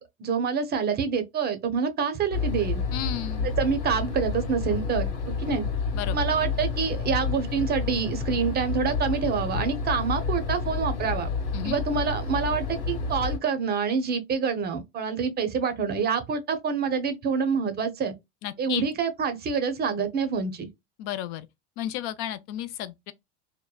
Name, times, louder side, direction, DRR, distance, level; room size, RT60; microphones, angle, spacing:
voice 1, 0.0-2.8 3.4-5.6 6.1-11.3 11.6-18.1 18.6-20.7, right 6 dB, 30° right, 0.5 m, -27 dB
sound 1, 2.3-13.4, left 4 dB, 80° left, 1.3 m, -29 dB
voice 2, 2.9-3.5 5.9-6.2 11.5-11.8 18.4-18.9 21.0-21.5 21.8-23.1, left 12 dB, 65° left, 0.5 m, -33 dB
2.9 x 2.1 x 2.2 m
supercardioid pair, 110°, 35 cm